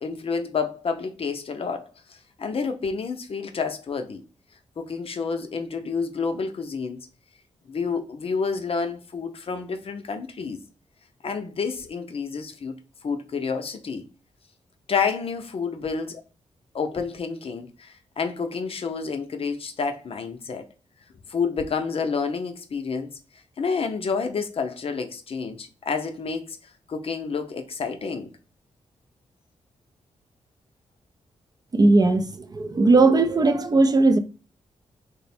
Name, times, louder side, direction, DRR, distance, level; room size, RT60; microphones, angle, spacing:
voice 1, 0.0-4.2 4.8-7.0 7.7-10.6 11.2-12.8 13.0-14.0 14.9-16.2 16.7-20.6 21.3-23.2 23.6-26.6 26.9-28.3, left 5 dB, 50° left, 0.5 m, -29 dB
voice 2, 31.7-34.2, right 3 dB, 30° right, 0.4 m, -18 dB
3.2 x 2.1 x 4.1 m
cardioid pair, 65°, 12 cm